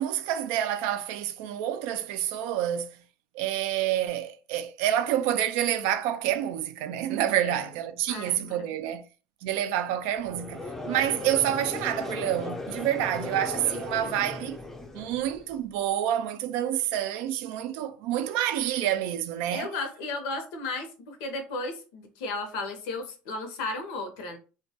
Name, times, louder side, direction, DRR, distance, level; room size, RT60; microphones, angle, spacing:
voice 1, 0.0-3.0 3.3-9.0 9.4-14.6 14.9-19.7, right 11 dB, 80° right, 0.3 m, -28 dB
voice 2, 8.1-8.7 19.5-24.4, left 3 dB, 85° left, 0.7 m, -34 dB
Conversation / Crowd, 10.2-15.5, left 2 dB, 10° left, 0.4 m, -37 dB
2.2 x 2.2 x 2.7 m
cardioid pair, 125°, 3 cm